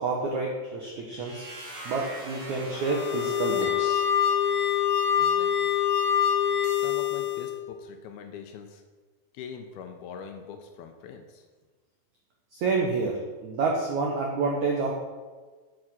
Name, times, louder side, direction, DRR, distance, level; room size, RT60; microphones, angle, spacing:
voice 1, 0.0-1.4 1.8-4.0 12.5-14.9, right 3 dB, 85° right, 0 dB, 1.6 m, -28 dB
sound 1, 1.1-5.0, right 1 dB, 40° right, 2.6 m, -43 dB
sound 2, 2.7-7.6, left 9 dB, 65° left, 1.4 m, -25 dB
voice 2, 5.2-5.7 6.7-8.8 9.3-11.4, left 7 dB, 80° left, 6 dB, 2.4 m, -43 dB
7.5 x 7.4 x 6.1 m, 1.4 s
omnidirectional pair, 4.9 m